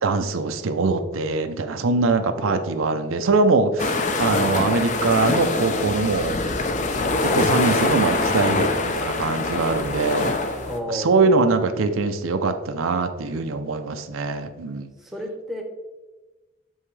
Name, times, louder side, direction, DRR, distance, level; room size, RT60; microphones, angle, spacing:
voice 1, 0.0-6.4 7.2-10.3 10.9-14.9, right 3 dB, 85° right, 7 dB, 0.6 m, -22 dB
voice 2, 2.1-2.8 6.9-7.1 10.6-11.5 15.0-15.6, equal, ahead, 1 dB, 0.8 m, -32 dB
sound 1, 3.8-10.8, left 3 dB, 35° left, 0.5 m, -24 dB
6.9 x 5.5 x 3.2 m, 1.2 s
head